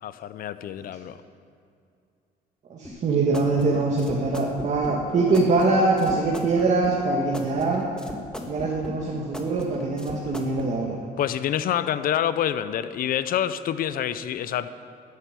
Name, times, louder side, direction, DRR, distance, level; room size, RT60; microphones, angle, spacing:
voice 1, 0.0-1.2 11.2-14.7, left 10 dB, 60° left, 13 dB, 0.7 m, -27 dB
voice 2, 2.7-7.9 8.5-11.0, right 3 dB, 45° right, -2 dB, 1.9 m, -23 dB
sound 1, 2.8-10.7, left 1 dB, 5° left, 1.6 m, -37 dB
14.0 x 8.3 x 9.3 m, 2.4 s
cardioid pair, 110°, 17 cm